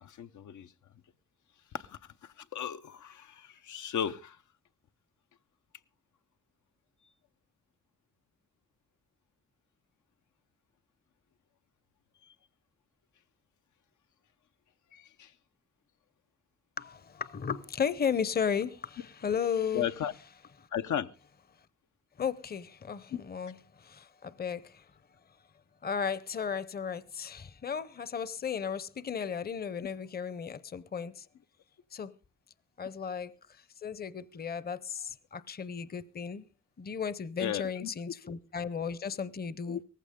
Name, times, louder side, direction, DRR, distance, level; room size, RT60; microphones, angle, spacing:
voice 1, 0.0-0.7 1.7-4.4 14.9-15.3 19.7-20.1 20.7-21.1 23.1-23.2 37.4-37.9 39.7-39.8, left 9 dB, 90° left, 0.7 m, -35 dB
voice 2, 16.8-19.9 20.6-20.7 22.2-24.9 25.8-31.3 31.9-32.1 32.8-36.5 36.8-39.8, left 7 dB, 35° left, 0.6 m, -35 dB
18.0 x 15.0 x 3.6 m
wide cardioid pair, 120°, 29 cm